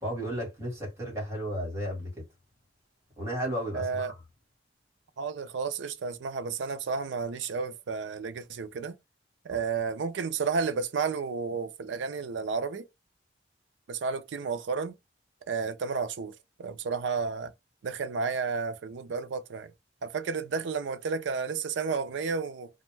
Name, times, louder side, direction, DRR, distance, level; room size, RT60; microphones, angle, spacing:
voice 1, 0.0-2.2 3.2-4.2 9.5-9.6, equal, 15° right, 1.5 m, -34 dB
voice 2, 3.7-4.1 5.2-9.0 9.4-12.9 13.9-14.9 15.5-17.5 17.8-19.7 20.0-22.7, right 5 dB, 85° right, 0.4 m, -32 dB
2.6 x 2.1 x 3.2 m
head